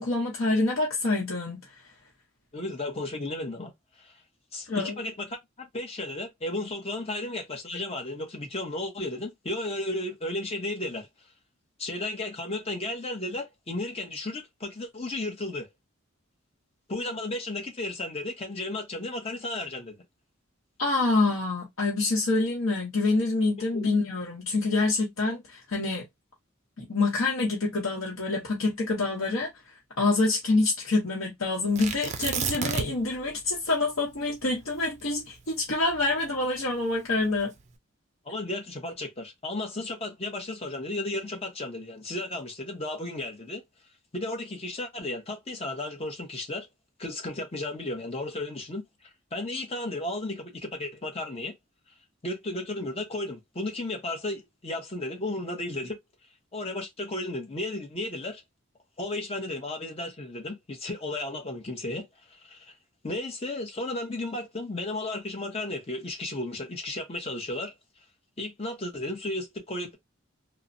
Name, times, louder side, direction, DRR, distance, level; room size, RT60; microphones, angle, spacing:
voice 1, 0.0-1.7 4.7-5.0 20.8-26.0 26.8-29.5 30.0-37.5, left 3 dB, 75° left, 0.8 m, -26 dB
voice 2, 2.5-4.2 4.5-5.3 5.6-11.1 11.8-15.7 16.9-20.0 23.7-23.9 38.2-43.6 44.1-46.7 47.0-51.5 52.2-56.0 56.5-58.4 59.0-62.7 63.0-67.7 68.4-70.0, left 2 dB, 30° left, 0.8 m, -34 dB
Tearing, 31.8-33.2 33.4-33.5 34.1-36.5 37.2-37.6, right 6 dB, 35° right, 0.4 m, -32 dB
3.0 x 2.0 x 2.6 m
head